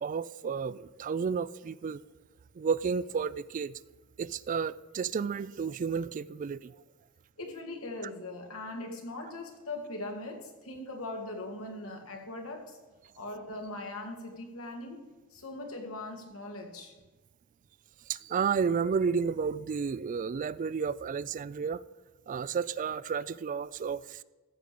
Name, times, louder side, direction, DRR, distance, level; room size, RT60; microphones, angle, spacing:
voice 1, 0.0-2.0 2.6-3.8 4.2-6.7 18.1-21.8 22.3-24.2, right 6 dB, 40° right, 0.3 m, -32 dB
voice 2, 7.4-12.8 13.2-15.0 15.3-16.9, left 2 dB, 85° left, 2.3 m, -40 dB
14.5 x 5.2 x 8.5 m
head